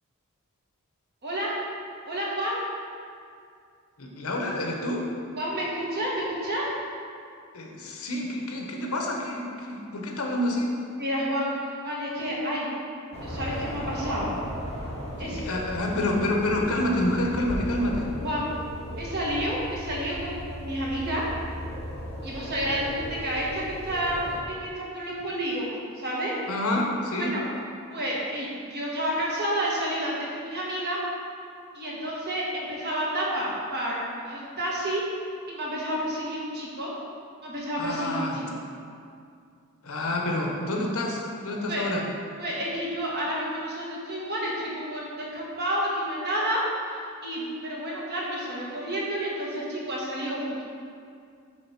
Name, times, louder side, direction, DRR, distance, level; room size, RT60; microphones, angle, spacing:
voice 1, 1.2-1.6 2.0-2.6 5.4-6.7 11.0-12.7 13.2-14.3 15.2-15.4 18.2-18.5 19.0-21.3 22.2-26.3 27.2-27.4 27.9-31.0 31.7-35.1 35.5-36.9 37.4-38.5 41.7-41.8 42.4-50.6, equal, 50° right, -5 dB, 1.5 m, -30 dB
voice 2, 4.0-5.1 7.5-10.7 15.2-18.1 26.5-27.3 37.8-38.4 39.8-42.0, left 1 dB, 70° left, 0 dB, 1.0 m, -28 dB
sound 1, 13.1-24.4, equal, 30° left, 1.2 m, -36 dB
7.7 x 3.5 x 5.8 m, 2.3 s
head